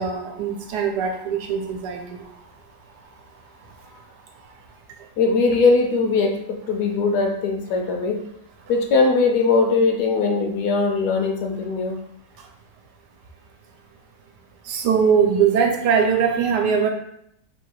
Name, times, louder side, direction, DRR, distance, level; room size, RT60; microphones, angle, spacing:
voice 1, 0.0-2.4 3.7-3.9 4.4-4.6 5.0-5.1 12.4-12.5 14.6-16.9, right 6 dB, 80° right, 3 dB, 1.2 m, -22 dB
voice 2, 5.2-8.2 8.7-12.0, left 4 dB, 70° left, 3 dB, 1.1 m, -20 dB
3.2 x 2.8 x 4.4 m, 0.74 s
omnidirectional pair, 1.8 m